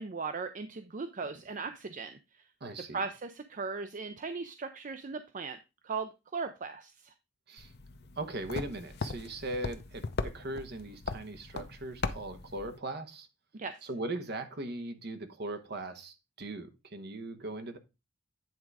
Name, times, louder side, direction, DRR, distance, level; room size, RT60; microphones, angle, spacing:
voice 1, 0.0-2.4 2.9-5.6 5.8-7.1 13.5-13.9, right 4 dB, 40° right, 0.5 m, -38 dB
voice 2, 2.6-3.0 7.5-7.7 8.2-13.3 13.8-17.8, right 2 dB, 55° right, 1.1 m, -39 dB
sound 1, 7.6-12.8, left 3 dB, 55° left, 0.7 m, -39 dB
9.4 x 3.8 x 4.7 m
head